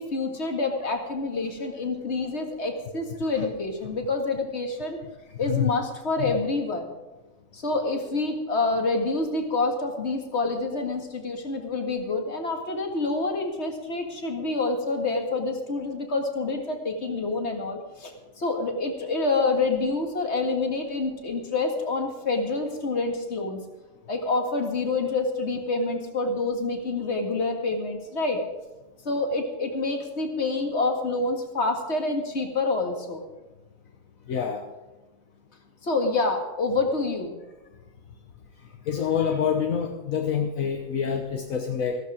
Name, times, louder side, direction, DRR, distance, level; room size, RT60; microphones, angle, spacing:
voice 1, 0.0-5.0 5.4-6.9 7.5-23.6 24.1-28.4 29.0-33.2 35.8-37.4, left 3 dB, 50° left, 4 dB, 2.2 m, -27 dB
voice 2, 34.3-34.7 38.8-42.0, left 7 dB, 75° left, 4 dB, 1.4 m, -26 dB
15.0 x 13.0 x 5.0 m, 1.1 s
omnidirectional pair, 1.4 m